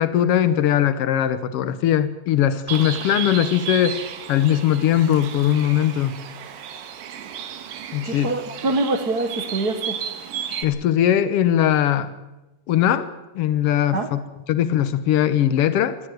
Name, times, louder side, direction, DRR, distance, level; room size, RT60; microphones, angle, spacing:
voice 1, 0.0-4.0 4.3-6.2 7.9-8.3 10.6-12.1 12.7-13.1 13.3-16.0, left 11 dB, 75° left, 13 dB, 1.3 m, -20 dB
Bird, 2.7-10.6, right 9 dB, 85° right, 3.0 m, -33 dB
voice 2, 8.1-10.0 13.9-14.1, right 2 dB, 45° right, 8 dB, 1.3 m, -24 dB
20.0 x 15.0 x 9.3 m, 1.0 s
omnidirectional pair, 3.8 m